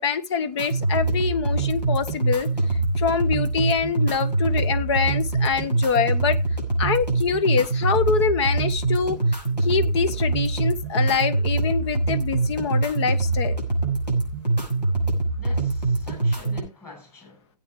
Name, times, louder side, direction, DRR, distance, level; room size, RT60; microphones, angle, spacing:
voice 1, 0.0-2.5 3.0-6.4 6.8-9.2 9.6-13.6, left 6 dB, 40° left, 1.3 m, -24 dB
sound 1, 0.6-16.6, right 2 dB, 90° left, 6.0 m, -24 dB
voice 2, 15.4-17.5, left 4 dB, 10° left, 8.0 m, -45 dB
18.0 x 8.4 x 3.2 m
figure-of-eight pair, 130°, 21 cm